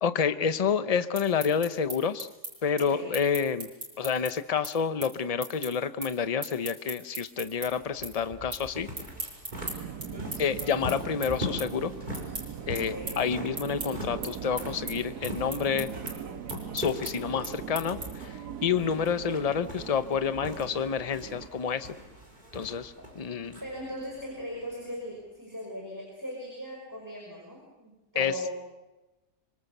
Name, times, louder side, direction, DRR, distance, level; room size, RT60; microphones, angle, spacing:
voice 1, 0.0-2.3 2.6-3.7 4.0-8.9 10.4-11.9 12.7-15.9 16.7-18.3 18.6-21.9 22.5-23.6 28.2-28.3, left 6 dB, 35° left, 12 dB, 0.7 m, -28 dB
sound 1, 0.9-7.7 8.0-8.6 8.9-18.3, right 2 dB, 60° right, 6.5 m, -39 dB
voice 2, 2.8-3.2 10.0-10.4 12.8-13.2 23.0-23.1 23.6-28.6, equal, 10° right, -1 dB, 5.3 m, -39 dB
sound 2, 7.8-25.2, left 1 dB, 25° right, 4.8 m, -43 dB
Subway metro underground, 9.5-21.5, right 8 dB, 80° right, 1.7 m, -40 dB
25.5 x 24.0 x 6.8 m, 1.1 s
omnidirectional pair, 1.7 m